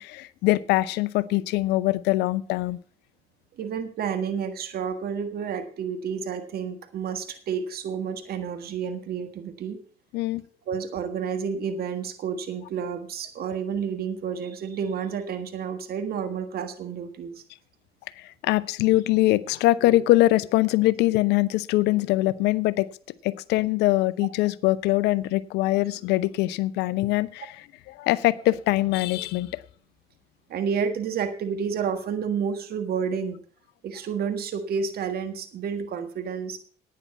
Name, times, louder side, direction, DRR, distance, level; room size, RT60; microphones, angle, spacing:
voice 1, 0.0-2.8 10.1-10.4 18.2-22.9 23.2-27.5 27.9-29.6, left 17 dB, 75° left, 20 dB, 0.6 m, -23 dB
voice 2, 3.5-9.8 10.7-17.4 30.5-33.4 33.8-36.6, right 6 dB, 60° right, 7 dB, 1.6 m, -30 dB
11.0 x 9.3 x 5.6 m, 0.43 s
hypercardioid pair, 55°, 18 cm